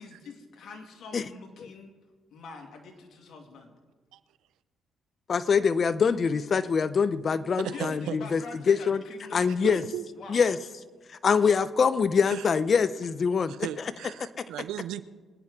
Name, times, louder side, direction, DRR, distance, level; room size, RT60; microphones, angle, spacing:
voice 1, 0.0-1.9 2.3-3.7 7.6-9.7 10.1-10.4, left 4 dB, 70° left, 2 dB, 2.3 m, -45 dB
voice 2, 5.3-8.4 8.7-9.0 9.3-9.8 10.3-10.6 11.2-13.5, left 6 dB, 45° left, 14 dB, 0.7 m, -24 dB
voice 3, 7.6-8.2 9.6-10.0 12.3-12.5 13.5-15.0, right 12 dB, 90° right, 14 dB, 0.6 m, -36 dB
24.5 x 9.6 x 3.7 m, 1.4 s
cardioid pair, 90°, 0 cm